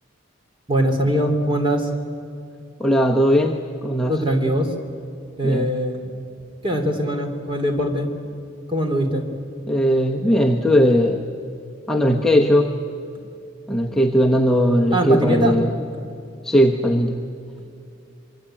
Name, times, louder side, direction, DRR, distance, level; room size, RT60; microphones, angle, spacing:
voice 1, 0.7-1.9 4.1-4.7 5.4-6.0 6.6-8.1 8.7-9.3 14.9-15.6, equal, 25° right, 4 dB, 3.1 m, -21 dB
voice 2, 2.8-4.2 5.4-5.7 9.7-11.3 11.9-12.7 13.7-15.7 16.4-17.2, equal, ahead, -2 dB, 1.1 m, -18 dB
26.0 x 24.0 x 8.9 m, 2.5 s
head